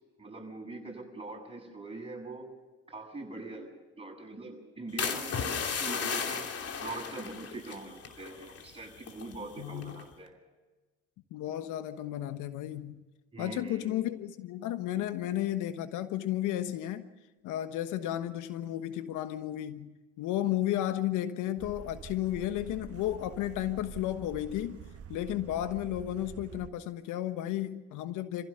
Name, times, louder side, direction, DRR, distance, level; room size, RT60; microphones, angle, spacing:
voice 1, 0.2-2.5 2.9-6.5 6.8-10.4 13.3-13.9, right 2 dB, 15° right, 1 dB, 7.9 m, -43 dB
sound 1, 5.0-8.7 9.0-9.4 9.8-10.1, left 6 dB, 50° left, 3.0 m, -35 dB
voice 2, 9.6-10.0 11.3-13.0 13.4-17.1 17.4-19.9 20.2-24.8 25.1-28.5, left 13 dB, 70° left, 11 dB, 1.3 m, -33 dB
sound 2, 21.6-26.7, right 7 dB, 45° right, 1.3 m, -47 dB
27.0 x 15.5 x 6.9 m, 1.2 s
hypercardioid pair, 65°, 32 cm